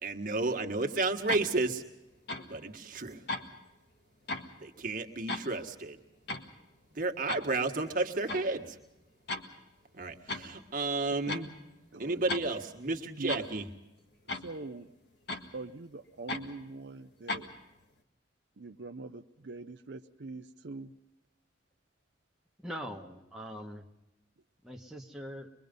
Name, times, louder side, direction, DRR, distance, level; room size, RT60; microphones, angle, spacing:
voice 1, 0.0-1.8 2.5-3.2 4.6-6.0 6.9-8.8 9.9-11.5 12.0-13.6, right 3 dB, 50° right, 4 dB, 1.7 m, -32 dB
sound 1, 1.3-1.5 2.3-2.5 3.3-3.4 4.3-4.5 5.3-5.5 6.3-6.4 7.3-7.4 8.3-8.5 9.3-9.5 10.3-10.5 11.3-11.5 12.3-12.5 13.3-13.5 14.3-14.5 15.3-15.5 16.3-16.4 17.3-17.5, left 2 dB, 65° left, 1.7 m, -35 dB
voice 2, 11.9-12.4 13.2-13.5 14.3-14.9 15.5-17.5 18.6-21.0, right 3 dB, 70° right, 6 dB, 0.7 m, -43 dB
voice 3, 22.6-23.8 24.6-25.5, equal, ahead, -1 dB, 1.4 m, -42 dB
24.5 x 22.5 x 5.3 m, 0.95 s
head